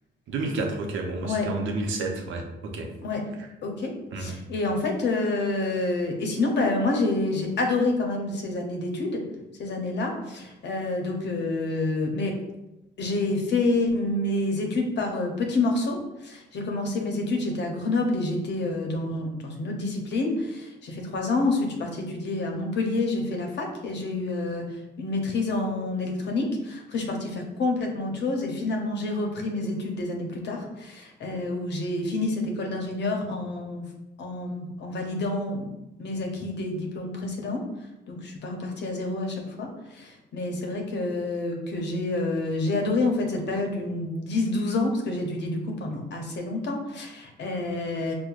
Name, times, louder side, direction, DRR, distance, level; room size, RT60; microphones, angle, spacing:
voice 1, 0.3-2.9 4.1-4.4, right 3 dB, 75° right, 2 dB, 0.6 m, -30 dB
voice 2, 3.6-3.9 4.2-9.2 9.6-12.3 13.0-33.9 34.2-35.7 36.0-37.6 38.1-48.1, left 2 dB, 60° left, 2 dB, 0.7 m, -28 dB
4.5 x 2.1 x 2.4 m, 0.98 s
cardioid pair, 90°, 20 cm